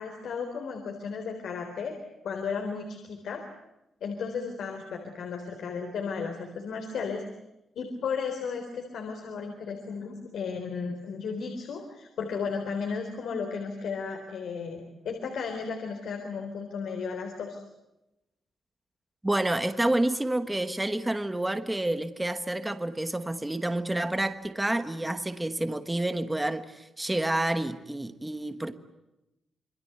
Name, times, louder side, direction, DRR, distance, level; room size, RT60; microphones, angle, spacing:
voice 1, 0.0-1.9 2.2-3.4 4.0-7.2 7.7-17.6, left 5 dB, 70° left, 3.9 m, -34 dB
voice 2, 19.2-28.7, right 1 dB, 10° right, 1.2 m, -29 dB
27.0 x 25.0 x 8.1 m
wide cardioid pair, 180°, 0 cm